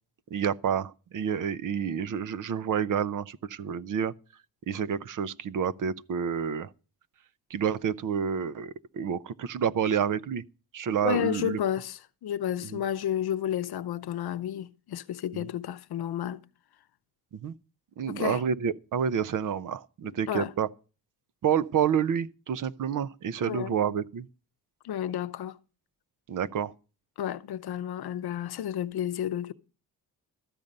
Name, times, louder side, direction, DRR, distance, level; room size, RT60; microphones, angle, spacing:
voice 1, 0.3-4.1 4.7-6.7 7.5-10.4 10.7-11.6 12.7-12.8 17.3-17.5 18.0-20.7 21.4-24.3 26.3-26.7, right 8 dB, 60° right, 0.6 m, -29 dB
voice 2, 11.0-16.4 18.1-18.4 20.0-20.5 23.4-23.7 24.8-25.6 27.2-29.5, left 10 dB, 85° left, 0.7 m, -31 dB
13.5 x 5.3 x 8.7 m
wide cardioid pair, 160°, 37 cm